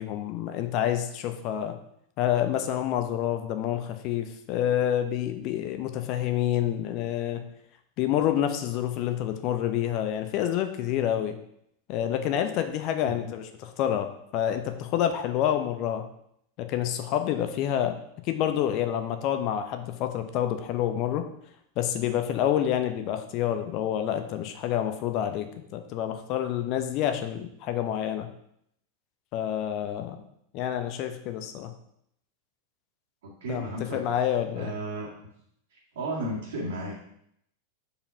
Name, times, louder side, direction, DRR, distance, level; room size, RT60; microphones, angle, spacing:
voice 1, 0.0-1.7 2.2-7.4 8.0-11.3 11.9-16.0 16.6-18.0 18.2-21.3 21.8-25.5 25.7-28.3 29.3-30.2 30.5-31.7 33.5-34.7, left 10 dB, 40° left, 8 dB, 0.7 m, -28 dB
voice 2, 33.2-35.1 35.7-37.0, right 1 dB, 60° right, -7 dB, 2.0 m, -35 dB
5.2 x 4.8 x 5.7 m, 0.73 s
figure-of-eight pair, 90°, 0 cm